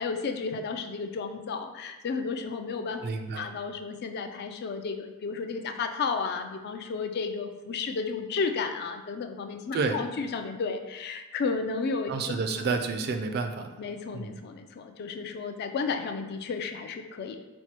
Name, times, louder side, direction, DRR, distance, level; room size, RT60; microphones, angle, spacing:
voice 1, 0.0-3.0 3.3-12.1 13.8-17.4, left 4 dB, 50° left, 6 dB, 0.3 m, -32 dB
voice 2, 3.0-3.5 9.7-10.0 12.1-13.7 14.1-14.4, right 4 dB, 45° right, 6 dB, 0.3 m, -30 dB
4.3 x 2.2 x 4.3 m, 1.1 s
head